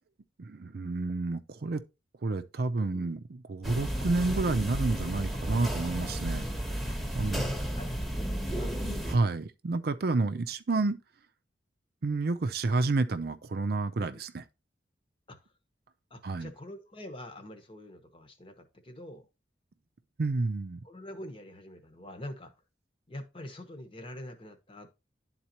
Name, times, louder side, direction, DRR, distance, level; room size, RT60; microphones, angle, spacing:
voice 1, 0.4-1.8 2.2-6.5 7.1-7.5 9.1-11.0 12.0-14.4 16.2-16.5 20.2-20.8, right 3 dB, 60° right, 0.5 m, -30 dB
sound 1, 3.6-9.2, equal, ahead, 1.1 m, -33 dB
voice 2, 6.9-8.7 10.3-10.4 14.1-14.2 15.3-15.4 16.1-19.3 20.8-22.5 23.1-24.9, left 1 dB, 30° left, 1.1 m, -45 dB
11.0 x 4.0 x 2.9 m
head